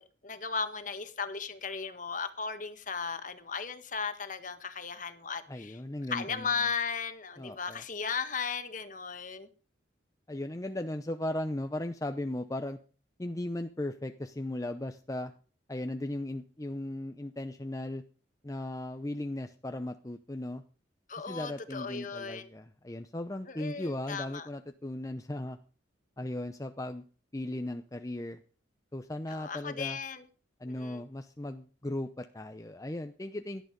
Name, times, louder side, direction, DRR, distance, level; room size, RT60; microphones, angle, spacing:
voice 1, 0.0-5.8 6.1-9.5 21.1-22.5 23.5-24.5 29.3-30.2 30.6-31.0, left 5 dB, 45° left, 1.5 m, -36 dB
voice 2, 5.5-6.6 7.4-7.8 10.3-12.8 13.2-15.3 15.7-18.0 18.4-20.6 21.2-25.6 26.2-27.0 27.3-28.4 28.9-30.0 30.6-33.6, left 1 dB, 20° left, 0.6 m, -37 dB
17.0 x 11.5 x 5.2 m
head